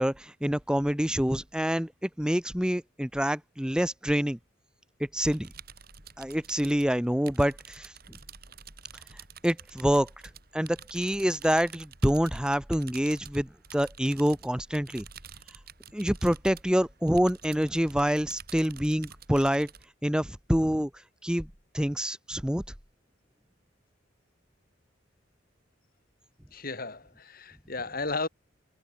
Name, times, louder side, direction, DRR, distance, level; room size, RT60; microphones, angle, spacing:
voice 1, 0.0-4.4 5.1-5.5 6.2-7.9 9.4-10.1 10.5-15.1 15.9-19.7 20.0-20.9 21.2-21.5 21.7-22.6, equal, 5° right, 0.9 m, -26 dB
sound 1, 5.3-19.9, right 7 dB, 50° right, 4.5 m, -49 dB
voice 2, 26.5-28.3, left 3 dB, 50° left, 3.6 m, -34 dB
head